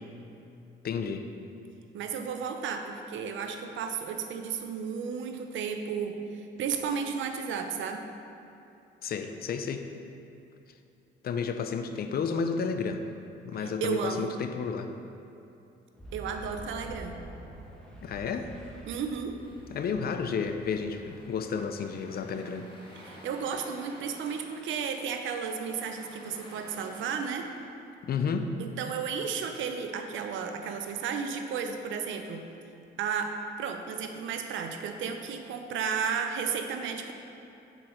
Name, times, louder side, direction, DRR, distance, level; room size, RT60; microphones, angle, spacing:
voice 1, 0.8-1.3 9.0-9.9 11.2-13.1 13.4-14.9 18.0-18.5 19.7-22.7 28.0-28.5, left 5 dB, 50° left, 7 dB, 0.4 m, -31 dB
voice 2, 1.9-8.1 13.6-14.3 16.1-17.2 18.9-19.4 23.0-27.5 28.6-32.4 33.0-37.1, right 6 dB, 75° right, 6 dB, 0.6 m, -33 dB
Boom, 16.0-22.5, right 1 dB, 5° left, 0.9 m, -48 dB
sound 1, 19.4-27.7, equal, 25° left, 1.2 m, -52 dB
5.9 x 4.6 x 3.8 m, 2.8 s
cardioid pair, 90°, 20 cm